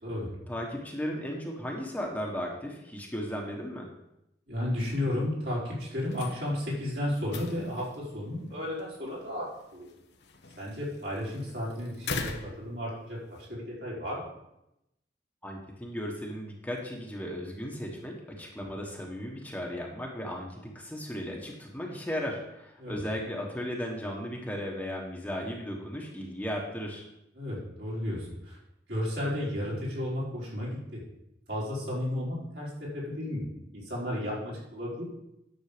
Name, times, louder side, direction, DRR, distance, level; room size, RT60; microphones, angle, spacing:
voice 1, 0.5-3.9 15.4-27.0, equal, 10° left, -1 dB, 1.3 m, -36 dB
voice 2, 4.5-9.4 9.7-9.9 10.6-12.3 12.6-14.3 22.8-23.0 27.3-28.6 28.9-31.0 31.5-35.0, left 1 dB, 65° right, -6 dB, 4.4 m, -33 dB
sound 1, 6.0-13.5, left 4 dB, 70° left, 1.0 m, -43 dB
10.0 x 7.2 x 5.1 m, 0.85 s
head